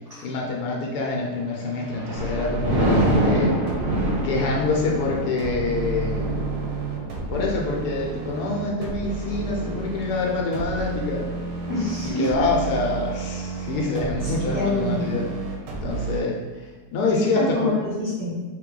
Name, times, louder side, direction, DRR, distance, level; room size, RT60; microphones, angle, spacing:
voice 1, 0.2-3.5 4.2-6.3 7.3-11.2 12.2-15.3 15.8-16.4 16.9-17.7, left 3 dB, 85° left, -2 dB, 1.2 m, -26 dB
Thunder, 1.5-13.0 13.5-13.8, right 1 dB, 60° right, 1.4 m, -28 dB
sound 1, 2.1-16.2, right 3 dB, 80° right, 1.3 m, -31 dB
voice 2, 11.7-12.3 14.2-15.2 17.0-18.4, left 1 dB, 25° right, -10 dB, 1.6 m, -27 dB
3.4 x 3.0 x 3.7 m, 1.3 s
omnidirectional pair, 1.7 m